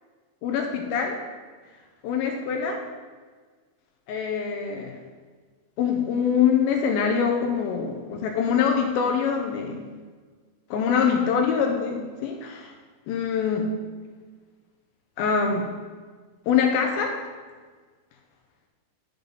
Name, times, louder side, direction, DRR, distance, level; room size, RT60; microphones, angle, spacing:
voice 1, 0.4-1.2 2.0-2.8 4.1-5.0 5.8-9.9 10.7-12.7 13.1-13.7 15.2-15.7 16.5-17.2, left 6 dB, 85° left, 2 dB, 2.2 m, -24 dB
8.7 x 5.4 x 3.9 m, 1.5 s
omnidirectional pair, 4.6 m